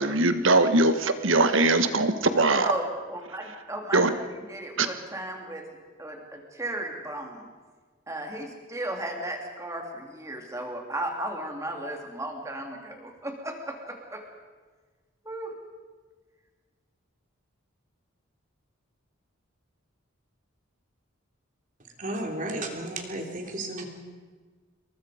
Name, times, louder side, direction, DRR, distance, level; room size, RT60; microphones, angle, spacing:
voice 1, 0.0-2.7 3.9-4.1 4.8-4.9, right 2 dB, 65° right, 9 dB, 1.5 m, -21 dB
voice 2, 2.6-5.6 6.0-7.5 8.1-14.2 15.2-15.5, right 1 dB, 15° right, 2 dB, 3.1 m, -35 dB
voice 3, 22.0-23.9, right 1 dB, 40° right, 3 dB, 3.2 m, -33 dB
27.5 x 22.5 x 5.1 m, 1.4 s
head